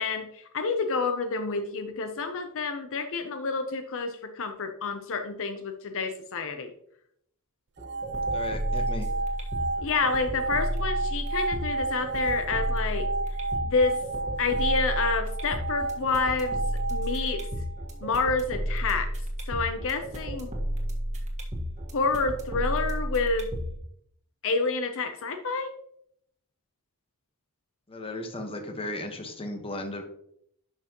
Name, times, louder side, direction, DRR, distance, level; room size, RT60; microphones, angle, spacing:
voice 1, 0.0-6.7 9.8-13.1 13.6-14.0 14.4-16.6 16.9-17.4 18.0-19.1 19.5-20.5 21.9-23.5 24.4-25.7, left 4 dB, 65° left, 6 dB, 0.7 m, -28 dB
sound 1, 7.8-23.8, equal, 30° right, 1.6 m, -32 dB
sound 2, 7.8-17.9, right 3 dB, 50° right, 0.6 m, -32 dB
voice 2, 8.3-9.1 27.9-30.0, left 1 dB, 25° left, 4 dB, 1.2 m, -35 dB
11.0 x 5.7 x 3.0 m, 0.71 s
head